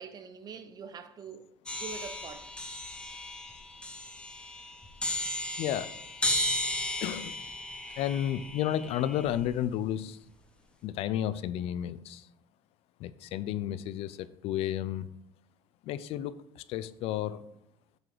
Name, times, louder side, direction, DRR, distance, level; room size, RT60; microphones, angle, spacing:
voice 1, 0.0-2.5, right 6 dB, 35° right, 0.7 m, -44 dB
sound 1, 1.7-9.6, left 1 dB, 10° left, 0.9 m, -35 dB
voice 2, 5.6-5.9 7.0-7.4 8.0-10.2 10.8-12.3 13.0-15.1 15.8-17.4, left 11 dB, 60° left, 0.4 m, -32 dB
7.7 x 3.9 x 4.6 m
cardioid pair, 115°, 11 cm